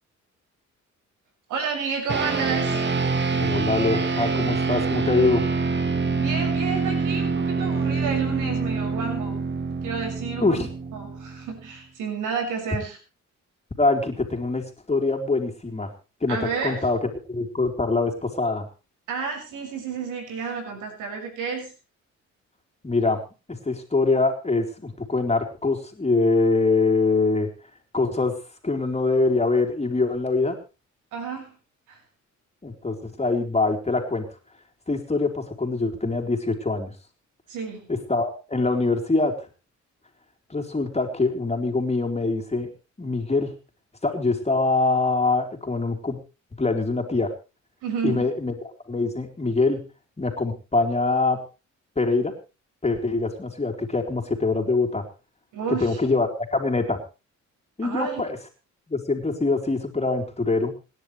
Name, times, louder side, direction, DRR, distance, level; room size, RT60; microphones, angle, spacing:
voice 1, 1.5-2.8 6.2-9.4 9.8-10.6 10.9-13.0 16.3-16.9 19.1-21.7 31.1-31.6 31.9-32.0 37.5-37.9 47.8-48.3 55.5-56.0 57.8-58.2, right 5 dB, 90° right, 3 dB, 6.5 m, -30 dB
sound 1, 2.1-11.7, right 4 dB, 35° right, 2.1 m, -26 dB
voice 2, 3.4-5.4 10.4-10.7 12.7-12.8 13.8-15.9 16.2-18.7 22.8-23.2 23.6-27.5 27.9-28.4 28.6-30.6 32.6-34.3 34.9-36.9 37.9-39.3 40.5-42.7 43.0-43.5 44.0-46.2 46.6-47.3 48.0-48.5 48.9-49.8 50.2-51.4 52.0-52.3 52.8-55.0 55.7-57.0 57.8-58.4 58.9-60.7, left 3 dB, 20° left, 3 dB, 3.9 m, -24 dB
27.0 x 11.0 x 3.3 m, 0.32 s
cardioid pair, 90°, 30 cm